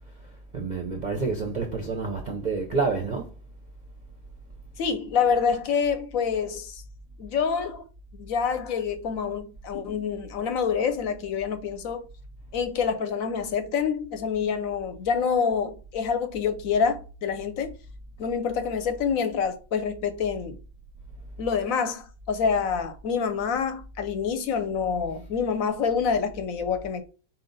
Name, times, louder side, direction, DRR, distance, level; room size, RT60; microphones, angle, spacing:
voice 1, 0.5-3.3, right 4 dB, 50° right, 0.5 m, -28 dB
voice 2, 4.8-6.8 7.2-7.8 8.1-12.0 12.5-17.7 18.2-20.6 21.4-27.0, left 6 dB, 70° left, 1.0 m, -27 dB
4.3 x 2.8 x 3.9 m
omnidirectional pair, 1.5 m